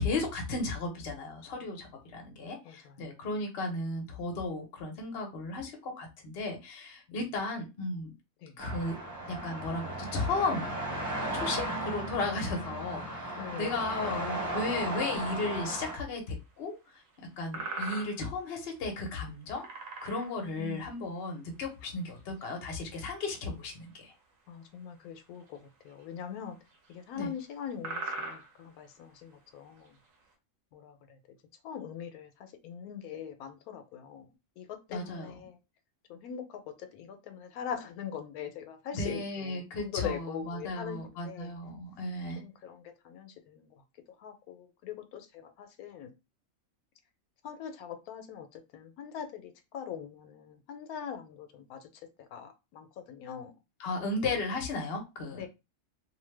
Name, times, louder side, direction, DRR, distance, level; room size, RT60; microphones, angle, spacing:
voice 1, 0.0-8.1 8.6-9.0 9.3-10.8 11.3-17.0 17.4-19.7 20.0-24.1 27.1-27.3 34.9-35.3 38.9-42.4 53.8-55.5, left 3 dB, 50° left, 2 dB, 0.9 m, -35 dB
voice 2, 2.6-3.0 7.1-7.2 8.4-8.6 13.4-14.3 20.4-20.9 24.5-25.6 25.8-26.6 26.9-30.0 30.7-31.2 31.6-34.3 34.6-35.6 36.1-41.5 42.4-43.8 44.2-46.1 47.4-51.9 52.2-53.5 55.3-55.5, left 8 dB, 90° left, 7 dB, 1.1 m, -42 dB
sound 1, 8.6-16.0, right 1 dB, 15° right, 0.9 m, -36 dB
sound 2, 17.1-17.2 17.5-18.3 18.7-18.8 19.6-20.5 21.6-21.7 22.1-22.5 23.7-23.8 25.4-25.6 25.9-26.0 26.7-26.9 27.4-27.5 27.8-28.6 29.7-29.9, right 3 dB, 65° right, 1.0 m, -39 dB
2.7 x 2.1 x 3.2 m, 0.25 s
omnidirectional pair, 1.5 m